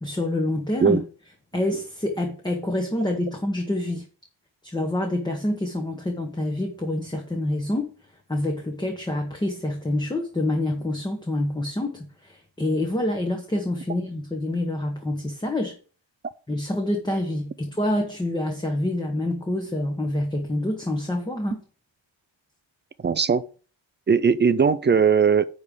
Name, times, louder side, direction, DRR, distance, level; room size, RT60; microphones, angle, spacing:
voice 1, 0.0-1.0 1.5-4.1 4.6-7.9 8.3-15.7 16.5-21.6, left 1 dB, 10° left, 0.9 m, -27 dB
voice 2, 23.0-23.5 24.1-25.5, right 6 dB, 25° right, 0.3 m, -19 dB
9.6 x 3.6 x 6.6 m
wide cardioid pair, 165°, 47 cm